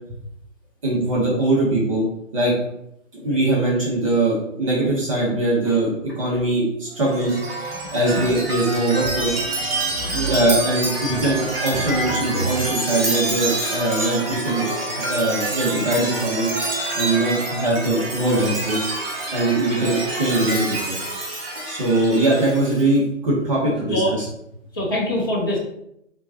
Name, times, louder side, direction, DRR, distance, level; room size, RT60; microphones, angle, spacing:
voice 1, 0.8-2.1 2.3-2.5 3.2-7.4 7.9-9.4 10.1-14.6 15.0-16.5 16.9-18.9 19.3-20.9 21.6-24.2, right 2 dB, 25° right, -5 dB, 0.8 m, -21 dB
Chime, 7.0-22.9, right 2 dB, 50° right, 1.1 m, -27 dB
voice 2, 24.7-25.6, left 1 dB, 20° left, -5 dB, 0.5 m, -24 dB
3.7 x 3.1 x 2.8 m, 0.78 s
figure-of-eight pair, 150°, 39 cm